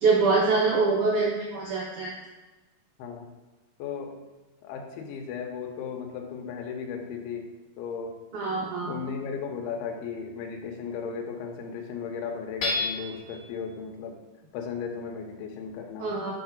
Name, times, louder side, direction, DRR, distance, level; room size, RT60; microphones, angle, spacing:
voice 1, 0.0-2.1 8.3-8.9 16.0-16.3, right 4 dB, 85° right, -3 dB, 1.7 m, -24 dB
voice 2, 3.8-4.2 4.6-7.5 7.8-8.2 8.5-14.2 14.5-16.1, left 6 dB, 80° left, 3 dB, 2.7 m, -36 dB
Hammer / Chink clink, 12.6-13.4, left 3 dB, 40° left, 2.4 m, -29 dB
7.2 x 3.1 x 5.1 m, 1.2 s
omnidirectional pair, 4.7 m